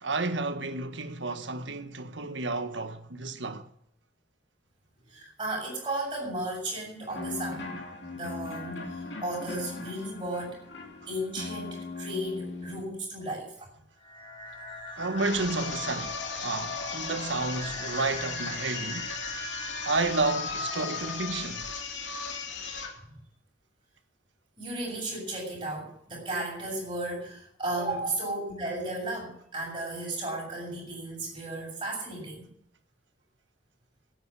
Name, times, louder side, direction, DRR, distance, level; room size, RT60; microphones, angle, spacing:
voice 1, 0.0-3.6 15.0-16.2 16.4-19.1 19.8-21.7, right 3 dB, 85° right, 1.4 m, -31 dB
voice 2, 5.1-7.7 8.1-10.6 11.1-13.5 23.0-23.1 24.6-32.5, right 1 dB, 25° right, 7.2 m, -34 dB
sound 1, 7.1-12.8, left 3 dB, 70° left, 3.1 m, -39 dB
sound 2, 14.0-21.6, left 2 dB, 30° left, 4.1 m, -41 dB
sound 3, 15.1-23.0, left 5 dB, 85° left, 2.7 m, -36 dB
13.0 x 9.1 x 10.0 m
head